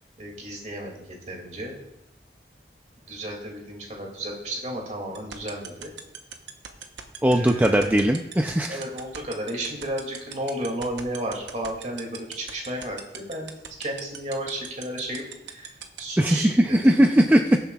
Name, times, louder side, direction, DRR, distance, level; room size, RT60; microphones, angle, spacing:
voice 1, 0.2-1.8 3.1-5.9 7.3-8.1 8.6-13.5 13.8-17.0, right 1 dB, 40° right, 0 dB, 2.3 m, -33 dB
sound 1, 5.2-16.0, right 8 dB, 90° right, 0.9 m, -37 dB
voice 2, 7.2-8.8 16.2-17.6, right 1 dB, 10° right, 4 dB, 0.4 m, -19 dB
20.5 x 7.3 x 2.3 m, 0.87 s
head